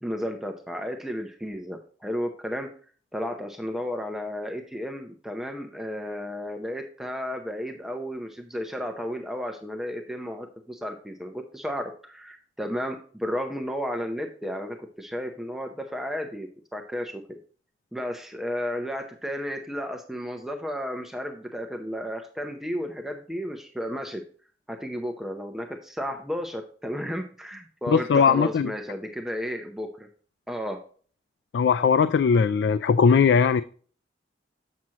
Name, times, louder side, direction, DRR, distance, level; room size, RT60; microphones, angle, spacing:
voice 1, 0.0-2.7 3.1-17.4 17.9-24.2 24.7-30.1 30.5-30.8, equal, ahead, 0.6 m, -33 dB
voice 2, 27.9-28.7 31.5-33.6, left 6 dB, 75° left, 0.3 m, -19 dB
7.5 x 6.0 x 2.8 m
head